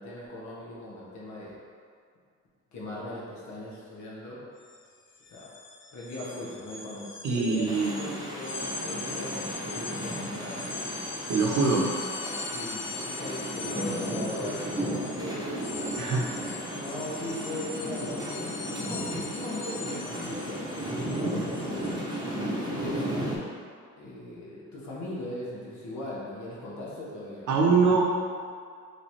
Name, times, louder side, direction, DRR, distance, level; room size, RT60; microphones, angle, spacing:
voice 1, 0.0-1.6 2.7-4.4 5.3-5.5 5.9-10.8 11.4-11.8 12.4-14.6 15.1-16.1 16.7-22.1 22.7-23.4 24.0-27.5, left 1 dB, 70° left, -6 dB, 1.3 m, -39 dB
sound 1, 4.6-4.8 5.1-22.3, left 3 dB, 40° left, 0.5 m, -40 dB
voice 2, 7.2-8.2 11.3-11.8 16.0-16.2 27.5-28.0, right 4 dB, 75° right, -2 dB, 0.8 m, -23 dB
sound 2, 7.7-23.4, right 1 dB, 15° right, 0.9 m, -34 dB
3.3 x 3.1 x 4.3 m, 2.2 s
cardioid pair, 90°, 30 cm